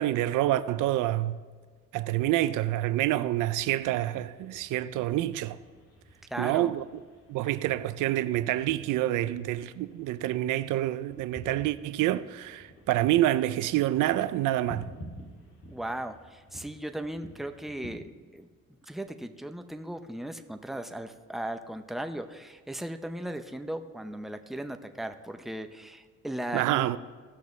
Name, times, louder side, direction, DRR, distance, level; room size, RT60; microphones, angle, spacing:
voice 1, 0.0-1.4 1.9-5.6 6.4-6.8 7.3-14.9 26.5-27.0, right 14 dB, 90° right, 0.5 m, -27 dB
sound 1, 3.2-17.9, equal, 50° left, 2.6 m, -50 dB
voice 2, 6.3-6.7 15.7-18.5 18.9-26.9, right 1 dB, ahead, 0.6 m, -37 dB
17.0 x 6.6 x 3.2 m
cardioid pair, 90°, 30 cm